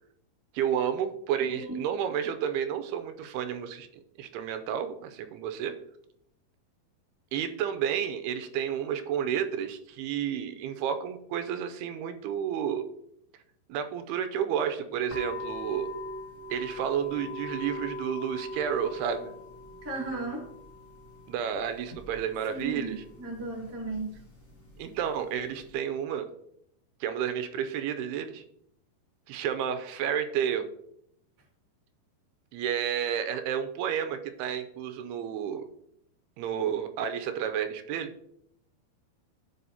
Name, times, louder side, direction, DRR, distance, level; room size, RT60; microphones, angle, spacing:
voice 1, 0.5-3.9 4.2-5.8 7.3-12.9 13.7-15.9 16.5-19.3 21.3-23.0 24.8-26.3 27.0-28.4 29.3-30.7 32.5-35.6 36.4-38.1, right 8 dB, 85° right, 8 dB, 2.6 m, -31 dB
voice 2, 1.4-1.8 19.8-20.5 22.5-24.1, right 3 dB, 10° right, -4 dB, 0.9 m, -35 dB
sound 1, 15.1-25.7, left 1 dB, 30° left, 1.8 m, -42 dB
14.5 x 4.9 x 2.8 m, 0.74 s
omnidirectional pair, 4.6 m